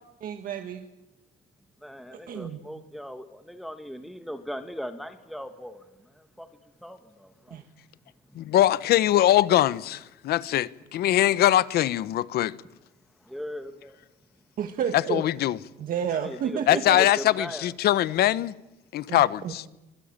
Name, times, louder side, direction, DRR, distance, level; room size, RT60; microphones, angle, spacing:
voice 1, 0.2-0.9 2.1-2.6 7.5-7.6 14.6-15.2 15.8-17.0 19.1-19.5, right 8 dB, 55° right, 1.9 m, -31 dB
voice 2, 1.8-7.6 13.2-14.0 16.1-17.7, equal, ahead, 1.9 m, -38 dB
voice 3, 8.4-12.5 15.1-15.6 16.7-18.5 18.9-19.6, left 13 dB, 70° left, 1.1 m, -22 dB
25.0 x 21.0 x 9.0 m
cardioid pair, 110°, 17 cm